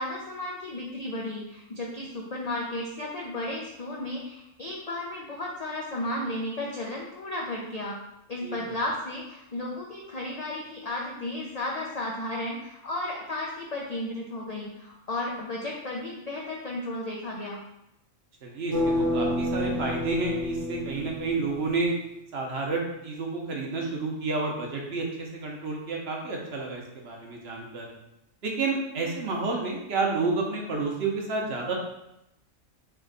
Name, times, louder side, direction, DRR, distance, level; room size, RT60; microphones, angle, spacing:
voice 1, 0.0-8.0 8.3-17.6, left 1 dB, 60° left, -2 dB, 0.4 m, -34 dB
voice 2, 18.4-22.0 22.3-27.9 28.4-31.7, right 3 dB, 55° right, 0 dB, 0.9 m, -30 dB
sound 1, 18.7-21.8, left 1 dB, 15° left, 0.8 m, -29 dB
3.4 x 3.1 x 3.8 m, 0.83 s
omnidirectional pair, 1.3 m